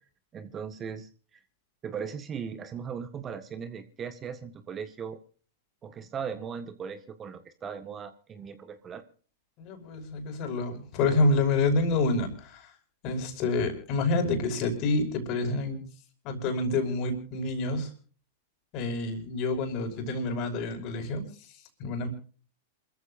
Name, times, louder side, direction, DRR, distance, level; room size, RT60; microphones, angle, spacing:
voice 1, 0.3-1.1 1.8-5.2 5.8-9.0, right 7 dB, 25° right, 10 dB, 1.6 m, -38 dB
voice 2, 9.6-12.7 13.0-15.9 16.2-17.9 18.7-22.1, left 2 dB, 45° left, 5 dB, 5.6 m, -28 dB
27.5 x 14.5 x 2.6 m, 0.41 s
hypercardioid pair, 105°, 0 cm